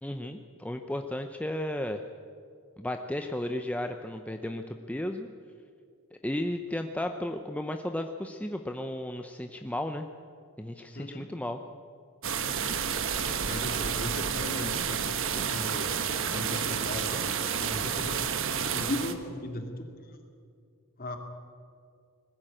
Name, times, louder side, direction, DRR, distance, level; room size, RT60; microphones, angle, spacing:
voice 1, 0.0-2.0 2.8-5.3 6.1-10.1 10.6-11.6, left 1 dB, 5° left, 5 dB, 0.6 m, -34 dB
voice 2, 10.9-11.3 13.4-20.2 21.0-21.2, left 1 dB, 40° left, 4 dB, 2.3 m, -38 dB
sound 1, 12.2-19.1, right 7 dB, 60° right, 1.3 m, -30 dB
20.5 x 15.0 x 8.9 m, 2.4 s
head